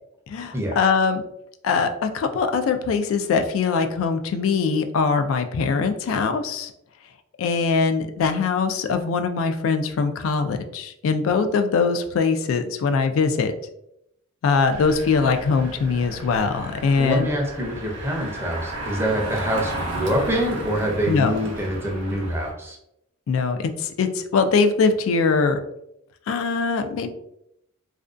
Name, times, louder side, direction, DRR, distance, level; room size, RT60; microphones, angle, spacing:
voice 1, 0.3-1.2 1.6-6.7 7.4-13.5 14.4-17.3 21.1-21.3 23.3-25.6 26.3-27.1, left 5 dB, 75° left, 8 dB, 0.3 m, -22 dB
Engine, 14.7-22.5, right 1 dB, 60° right, 0.6 m, -34 dB
voice 2, 17.0-22.8, equal, 10° right, -1 dB, 0.5 m, -25 dB
2.4 x 2.2 x 2.4 m, 0.79 s
head